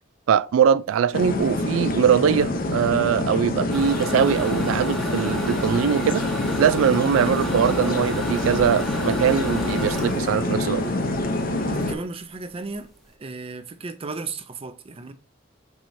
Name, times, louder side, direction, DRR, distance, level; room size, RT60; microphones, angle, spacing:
voice 1, 0.3-6.3 6.6-10.8, right 8 dB, 85° right, 0.3 m, -21 dB
sound 1, 1.1-12.0, left 2 dB, 45° left, 0.7 m, -26 dB
sound 2, 3.7-11.5 11.9-12.0 12.4-12.5 12.7-13.1, equal, ahead, 0.8 m, -34 dB
sound 3, 4.5-12.0, right 5 dB, 70° right, 0.9 m, -38 dB
voice 2, 11.7-12.9 13.2-15.1, right 3 dB, 30° right, 0.5 m, -34 dB
4.7 x 4.3 x 2.6 m
head